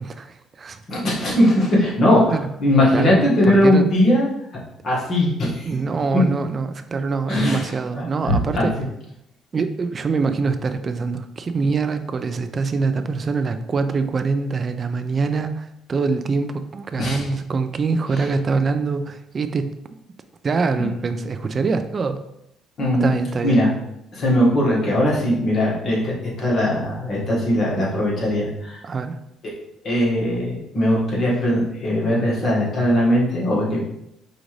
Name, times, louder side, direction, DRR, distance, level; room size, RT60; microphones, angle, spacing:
voice 1, 0.0-0.8 2.3-2.5 2.9-3.2 3.4-3.9 5.7-8.7 9.5-19.8 20.4-22.2 23.0-23.6 28.8-29.2, right 4 dB, 35° right, 9 dB, 0.3 m, -24 dB
voice 2, 0.9-4.3 4.8-5.7 7.3-8.7 17.0-17.3 20.8-20.9 22.8-23.1 23.4-23.7 24.1-28.8 29.8-33.8, left 1 dB, 50° left, -4 dB, 1.4 m, -19 dB
5.1 x 2.5 x 3.1 m, 0.81 s
cardioid pair, 105°, 0 cm